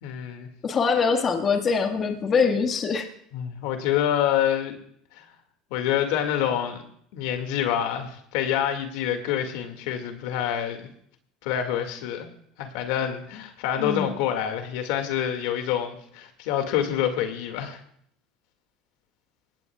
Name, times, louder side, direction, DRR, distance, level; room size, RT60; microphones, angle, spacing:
voice 1, 0.0-0.5 3.3-4.8 5.1-5.3 5.7-6.8 7.1-10.9 11.4-12.3 12.6-17.8, left 10 dB, 80° left, 5 dB, 2.2 m, -27 dB
voice 2, 0.6-3.1 13.8-14.1, left 5 dB, 35° left, 4 dB, 1.8 m, -23 dB
21.0 x 17.5 x 2.4 m, 0.66 s
supercardioid pair, 110°, 0 cm